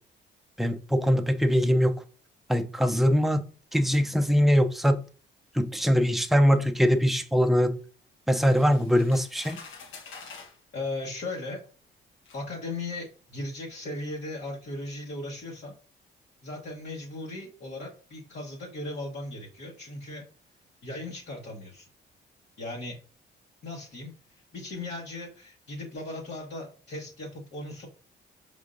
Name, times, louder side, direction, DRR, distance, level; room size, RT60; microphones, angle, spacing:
voice 1, 0.6-2.0 2.5-3.4 3.7-5.0 5.5-7.8 8.3-9.6, equal, ahead, 0.5 m, -22 dB
sound 1, 8.4-10.6 11.5-11.6 12.3-12.4, left 5 dB, 80° left, 1.0 m, -46 dB
voice 2, 10.7-11.6 12.3-15.7 16.4-20.3 20.8-21.9 22.6-23.0 23.6-24.1 24.5-27.9, left 2 dB, 60° left, 1.3 m, -37 dB
5.0 x 3.6 x 2.5 m
cardioid pair, 90°, 20 cm